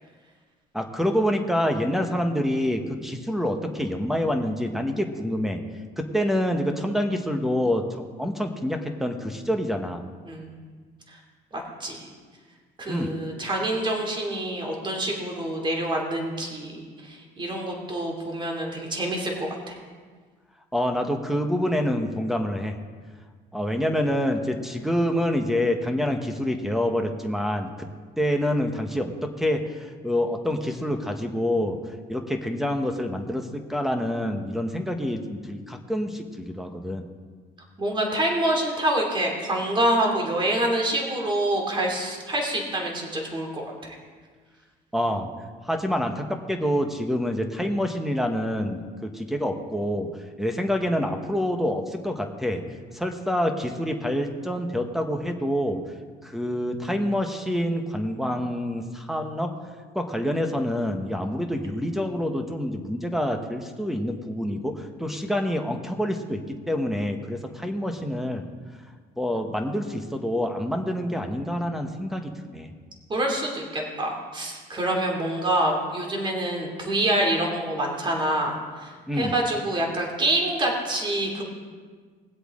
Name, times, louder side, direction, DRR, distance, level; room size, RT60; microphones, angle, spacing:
voice 1, 0.7-5.6 6.0-7.9 8.2-10.0 12.9-13.1 20.7-22.8 23.5-27.9 28.2-31.8 32.1-37.0 44.9-45.3 45.6-50.1 50.4-52.6 52.9-55.8 56.2-59.5 59.9-68.4 69.2-72.7 79.1-79.3, equal, ahead, 5 dB, 1.2 m, -27 dB
voice 2, 11.5-12.1 12.8-19.8 37.8-43.7 73.1-81.4, right 1 dB, 30° right, 0 dB, 2.8 m, -26 dB
20.5 x 8.0 x 3.8 m, 1.6 s
cardioid pair, 110°, 17 cm